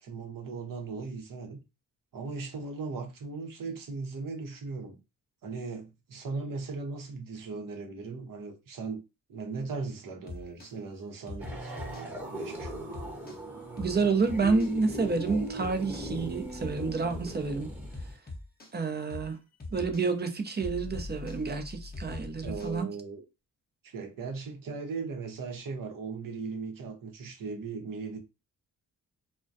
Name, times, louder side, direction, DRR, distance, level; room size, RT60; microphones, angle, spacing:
voice 1, 0.0-1.6 2.1-5.0 5.4-9.0 9.3-13.0 22.4-23.2 23.8-28.2, right 4 dB, 60° right, 0.8 m, -38 dB
sound 1, 10.3-10.7 11.3-12.1 12.6-13.4 13.8-14.0 14.3-14.7 15.3-16.1 16.6-17.4 17.9-18.7 19.1-19.3 19.6-20.1 20.6-22.8, left 2 dB, 25° left, 0.8 m, -42 dB
sound 2, 11.4-18.2, right 1 dB, 5° right, 0.9 m, -39 dB
voice 2, 13.8-17.7 18.7-19.4 19.7-22.9, right 4 dB, 25° right, 0.5 m, -29 dB
2.2 x 2.2 x 2.6 m
cardioid pair, 60°, 37 cm